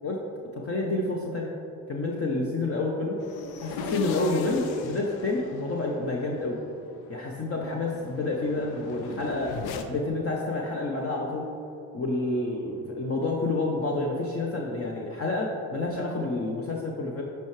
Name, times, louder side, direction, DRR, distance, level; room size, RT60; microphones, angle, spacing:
voice 1, 0.5-1.5 1.9-3.2 3.6-6.6 7.1-9.5 9.9-11.5 11.9-17.2, left 2 dB, 35° left, -1 dB, 0.9 m, -29 dB
sound 1, 3.2-9.8, left 5 dB, 70° left, 0.7 m, -39 dB
10.5 x 4.6 x 3.3 m, 2.9 s
supercardioid pair, 60°, 38 cm